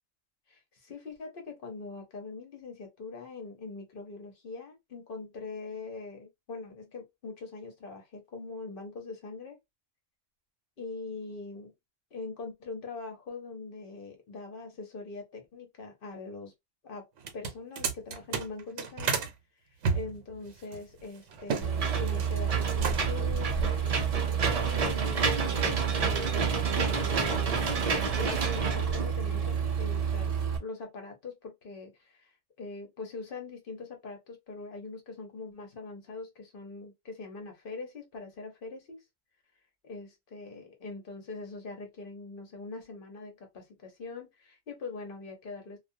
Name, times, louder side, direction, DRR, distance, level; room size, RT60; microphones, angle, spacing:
voice 1, 0.5-9.6 10.8-11.7 12.1-16.5 16.8-17.1 17.3-19.3 19.9-27.8 28.1-39.0 39.8-45.8, left 3 dB, 45° left, 1.0 m, -42 dB
sound 1, 17.2-19.3 19.8-21.7 22.0-22.4 22.7-23.3, right 5 dB, 75° right, 1.0 m, -32 dB
Engine / Mechanisms, 21.6-30.6, right 6 dB, 55° right, 0.4 m, -28 dB
2.4 x 2.3 x 2.6 m
omnidirectional pair, 1.3 m